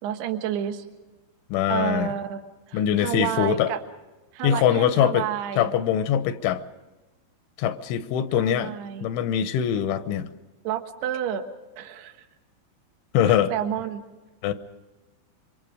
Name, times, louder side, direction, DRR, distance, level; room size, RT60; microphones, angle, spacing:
voice 1, 0.0-0.9 1.7-2.4 2.7-3.8 4.3-5.7 8.3-9.1 10.6-11.5 11.8-12.2 13.3-14.0, right 10 dB, 65° right, 6 dB, 3.3 m, -30 dB
voice 2, 1.5-2.1 2.7-3.7 4.4-5.3 5.6-6.6 7.6-8.7 9.0-10.3 13.1-13.5 14.4-14.5, left 10 dB, 80° left, 11 dB, 3.3 m, -23 dB
27.0 x 24.5 x 5.0 m, 1.1 s
omnidirectional pair, 5.5 m